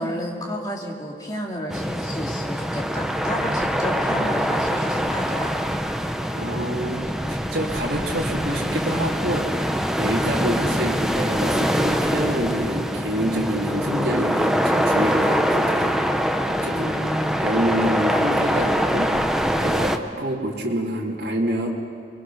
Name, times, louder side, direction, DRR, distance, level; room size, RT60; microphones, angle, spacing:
voice 1, 0.0-5.5 16.7-17.5, equal, 20° left, -1 dB, 2.8 m, -31 dB
sound 1, 1.7-20.0, equal, 5° right, 0.8 m, -24 dB
voice 2, 6.3-7.0 7.3-16.0 16.4-16.9 17.4-19.1 19.6-21.7, right 1 dB, 65° right, -4 dB, 2.7 m, -27 dB
29.0 x 21.0 x 6.3 m, 2.3 s
head